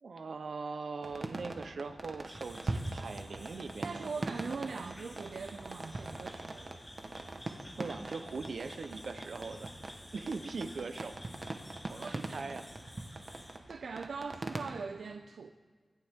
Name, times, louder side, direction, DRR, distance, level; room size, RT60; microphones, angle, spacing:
voice 1, 0.0-4.4 7.4-9.7 10.1-11.2 11.9-12.7, right 4 dB, 75° right, 8 dB, 0.9 m, -41 dB
sound 1, 1.0-14.8, right 2 dB, 40° right, 1.3 m, -42 dB
sound 2, 2.3-13.6, left 1 dB, 15° left, 1.7 m, -53 dB
voice 2, 3.8-6.8 8.9-9.0 12.0-12.2 13.1-13.2 13.7-15.5, right 5 dB, 90° right, 6 dB, 0.5 m, -41 dB
25.0 x 10.5 x 3.7 m, 1.5 s
wide cardioid pair, 95°, 0 cm